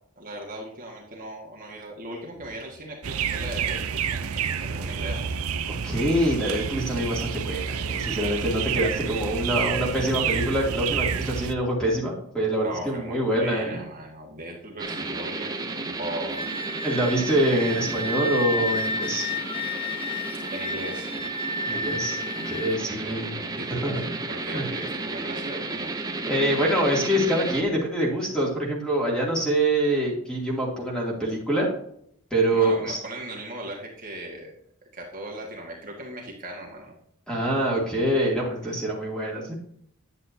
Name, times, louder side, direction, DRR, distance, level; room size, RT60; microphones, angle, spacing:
voice 1, 0.2-4.3 4.6-5.2 12.6-16.7 20.3-21.1 21.6-21.8 22.8-23.9 24.3-25.9 32.4-34.5 34.9-36.9 38.6-38.7, right 1 dB, 40° right, -1 dB, 1.7 m, -38 dB
sound 1, 3.0-11.5, right 7 dB, 80° right, 0.6 m, -29 dB
voice 2, 5.7-13.8 16.8-19.3 21.6-22.2 22.4-23.4 23.7-24.1 24.5-24.7 26.3-31.7 32.3-33.0 37.3-39.5, right 1 dB, 5° left, -3 dB, 2.6 m, -25 dB
sound 2, 14.8-27.6, right 3 dB, 15° right, 0.7 m, -33 dB
Wind instrument woodwind instrument, 16.3-22.7, left 1 dB, 25° left, 0.6 m, -31 dB
9.8 x 8.3 x 2.8 m, 0.69 s
head